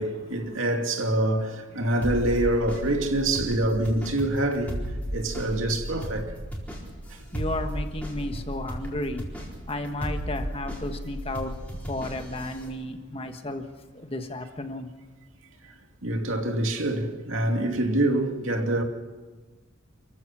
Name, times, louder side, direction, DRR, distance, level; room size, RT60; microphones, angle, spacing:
voice 1, 0.0-4.8 5.1-6.3 16.0-18.8, right 1 dB, 70° right, 2.6 m, -25 dB
sound 1, 2.0-12.7, equal, 5° left, 4.4 m, -35 dB
voice 2, 7.3-9.3 9.7-11.5 11.9-13.7 13.9-14.9, left 1 dB, 25° left, 1.4 m, -33 dB
29.0 x 15.0 x 6.2 m
head